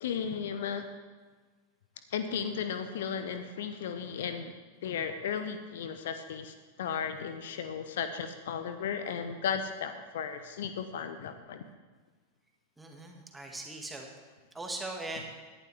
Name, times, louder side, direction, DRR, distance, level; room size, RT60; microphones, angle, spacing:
voice 1, 0.0-0.9 2.1-4.5 4.8-11.6, left 7 dB, 60° left, 9 dB, 0.8 m, -35 dB
voice 2, 12.8-14.1 14.5-15.2, right 2 dB, 10° right, 1 dB, 2.0 m, -40 dB
17.5 x 11.0 x 3.5 m, 1.4 s
figure-of-eight pair, 90°, 0 cm